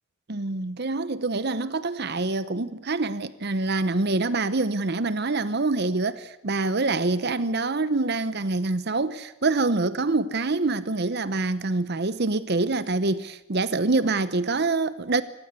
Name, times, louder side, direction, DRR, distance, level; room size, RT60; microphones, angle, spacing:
voice 1, 0.3-15.2, right 3 dB, 55° right, 0.9 m, -25 dB
24.5 x 18.5 x 8.3 m
head